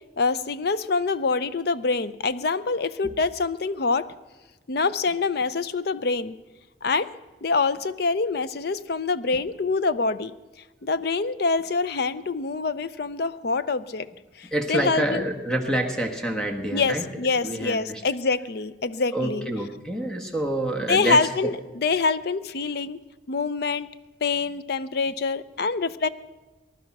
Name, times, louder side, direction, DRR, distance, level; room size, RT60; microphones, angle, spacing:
voice 1, 0.2-4.1 4.7-6.4 6.8-7.1 7.4-10.3 10.8-14.1 14.4-15.2 16.7-19.5 20.9-23.0 23.3-23.9 24.2-26.1, left 4 dB, 55° left, 15 dB, 0.5 m, -25 dB
voice 2, 14.5-17.0 17.4-18.0 19.1-21.5, right 1 dB, 5° left, 4 dB, 1.3 m, -27 dB
19.5 x 11.5 x 5.9 m, 1.2 s
head